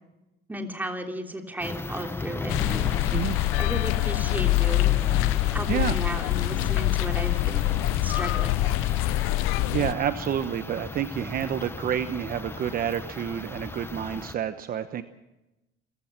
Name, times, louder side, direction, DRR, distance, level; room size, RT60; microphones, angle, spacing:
voice 1, 0.5-5.0 5.5-7.7 8.0-8.8, right 1 dB, 10° right, 3 dB, 3.2 m, -35 dB
sound 1, 1.6-14.3, left 3 dB, 10° left, 1.0 m, -36 dB
sound 2, 2.5-9.9, left 18 dB, 80° left, 0.7 m, -25 dB
voice 2, 9.4-15.0, right 9 dB, 45° right, 10 dB, 1.1 m, -29 dB
28.5 x 16.0 x 6.0 m, 0.98 s
cardioid pair, 135°, 21 cm